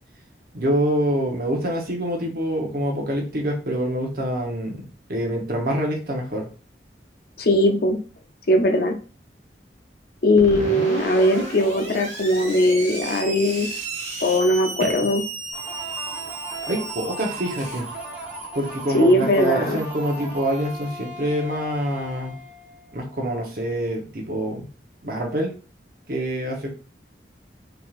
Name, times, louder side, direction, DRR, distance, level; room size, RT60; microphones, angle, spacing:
voice 1, 0.5-4.8 5.1-6.5 14.8-14.9 16.7-17.9 18.5-22.4 22.9-24.7 25.0-25.5 26.1-26.7, right 1 dB, 55° right, 1 dB, 0.9 m, -25 dB
voice 2, 7.4-8.0 8.5-9.0 10.2-13.7 14.2-15.2 18.9-19.8, left 1 dB, 55° left, 5 dB, 0.5 m, -19 dB
Screech, 10.4-20.8, right 2 dB, 85° right, 1.3 m, -34 dB
sound 1, 15.5-23.1, right 1 dB, 5° right, 0.8 m, -38 dB
3.5 x 2.9 x 2.4 m, 0.36 s
head